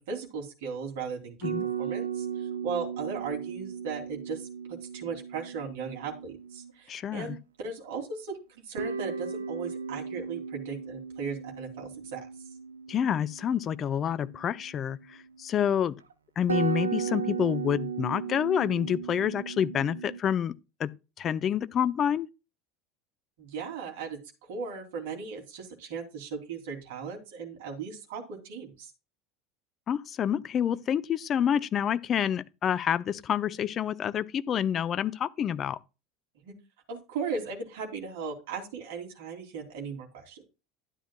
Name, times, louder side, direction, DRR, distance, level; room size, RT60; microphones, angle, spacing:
voice 1, 0.0-8.4 8.7-12.3 23.4-28.9 36.4-36.6 36.9-40.5, right 5 dB, 65° right, 2.9 m, -37 dB
sound 1, 1.4-6.7 8.8-15.4 16.1-16.2 16.5-20.2, right 7 dB, 85° right, 0.7 m, -36 dB
voice 2, 6.9-7.4 12.9-16.0 16.4-20.5 20.8-20.9 21.2-22.3 29.9-35.8, left 9 dB, 40° left, 0.6 m, -28 dB
12.0 x 10.0 x 2.3 m
figure-of-eight pair, 70°, 0 cm